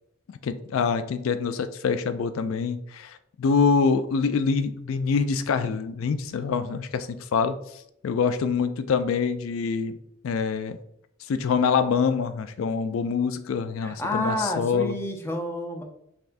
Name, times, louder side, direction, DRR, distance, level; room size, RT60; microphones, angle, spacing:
voice 1, 0.4-7.5 8.0-10.0 10.2-10.8 11.3-14.9, left 5 dB, 80° left, 10 dB, 0.4 m, -25 dB
voice 2, 13.8-15.8, left 1 dB, 10° left, 2 dB, 0.6 m, -29 dB
5.8 x 3.3 x 2.5 m, 0.77 s
head